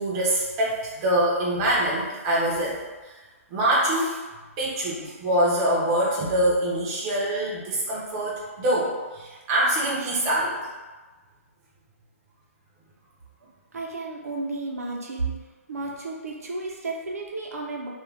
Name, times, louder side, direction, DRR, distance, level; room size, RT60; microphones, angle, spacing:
voice 1, 0.0-2.8 3.0-3.1 3.5-4.2 4.6-10.7, right 1 dB, 20° right, -5 dB, 0.4 m, -24 dB
voice 2, 13.7-15.4 15.7-17.9, right 3 dB, 80° right, -1 dB, 0.6 m, -32 dB
2.3 x 2.1 x 3.2 m, 1.3 s
hypercardioid pair, 165°, 8 cm